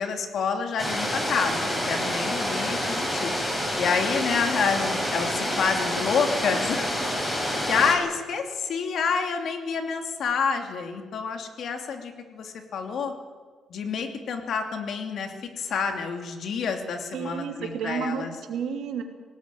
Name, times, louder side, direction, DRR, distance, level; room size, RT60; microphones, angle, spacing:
voice 1, 0.0-3.3 3.8-6.9 7.7-13.1 13.7-18.3, left 5 dB, 65° left, 5 dB, 2.8 m, -28 dB
sound 1, 0.8-7.9, equal, 15° left, 6.8 m, -28 dB
voice 2, 17.1-19.0, right 7 dB, 75° right, 4 dB, 3.0 m, -31 dB
19.0 x 18.0 x 9.3 m, 1.5 s
cardioid pair, 90°, 0 cm